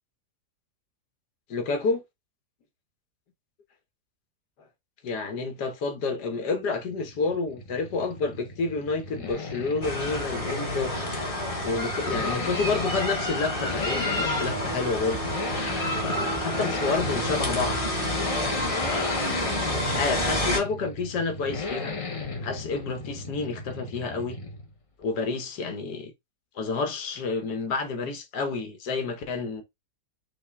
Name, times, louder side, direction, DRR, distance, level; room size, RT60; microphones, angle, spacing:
voice 1, 1.5-2.0 5.0-10.9 11.6-15.2 16.0-17.8 18.8-19.3 19.9-22.0 22.4-24.4 25.0-26.1 26.6-29.6, left 4 dB, 80° left, 1.6 m, -29 dB
Accelerating revving vroom, 6.6-24.8 25.0-25.1, left 3 dB, 40° left, 0.4 m, -35 dB
sound 1, 9.8-20.6, equal, 20° left, 1.4 m, -29 dB
5.6 x 2.6 x 3.3 m
omnidirectional pair, 1.7 m